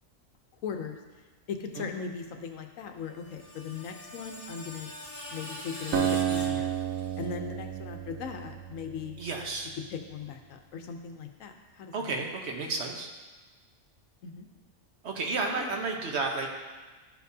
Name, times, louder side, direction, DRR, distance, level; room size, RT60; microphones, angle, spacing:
voice 1, 0.6-1.0 1.5-4.9 5.3-6.8 7.2-9.2 9.9-11.9 14.2-14.5 15.5-15.7, left 6 dB, 85° left, 5 dB, 1.1 m, -38 dB
Screech, 3.0-7.3, left 1 dB, 40° left, 1.1 m, -43 dB
Acoustic guitar, 5.9-9.5, right 9 dB, 90° right, 1.0 m, -31 dB
voice 2, 9.2-9.7 11.9-13.1 15.0-16.5, right 3 dB, 60° right, 1 dB, 1.1 m, -32 dB
12.0 x 4.6 x 2.7 m, 1.3 s
omnidirectional pair, 1.3 m